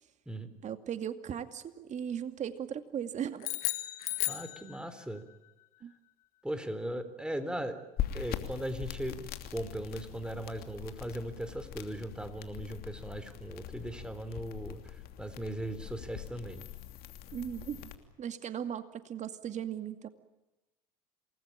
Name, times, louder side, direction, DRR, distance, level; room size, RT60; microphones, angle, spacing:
voice 1, 0.6-3.5 4.1-4.2 5.8-5.9 17.3-17.9 18.2-20.1, right 9 dB, 40° right, 9 dB, 2.4 m, -37 dB
sound 1, 3.4-5.2, left 16 dB, 75° left, 1.8 m, -35 dB
voice 2, 4.3-5.2 6.4-7.8 8.1-14.8 15.2-16.6, right 1 dB, 5° right, 10 dB, 3.8 m, -38 dB
sound 2, 8.0-17.9, left 11 dB, 55° left, 2.9 m, -42 dB
27.5 x 20.0 x 9.0 m, 1.0 s
hypercardioid pair, 80°, 19 cm